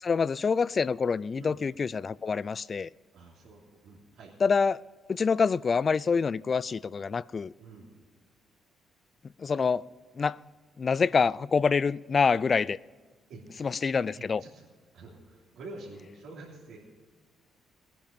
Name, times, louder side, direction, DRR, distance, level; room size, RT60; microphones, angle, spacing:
voice 1, 0.0-2.9 4.4-4.8 5.1-7.5 9.4-9.8 10.2-10.4 10.8-12.8 13.6-14.4, left 5 dB, 40° left, 0.3 m, -26 dB
voice 2, 3.1-4.3 7.6-7.9 13.3-13.5 14.1-14.7 14.9-16.8, right 3 dB, 80° right, 3.4 m, -47 dB
19.0 x 10.5 x 5.3 m
cardioid pair, 90°, 0 cm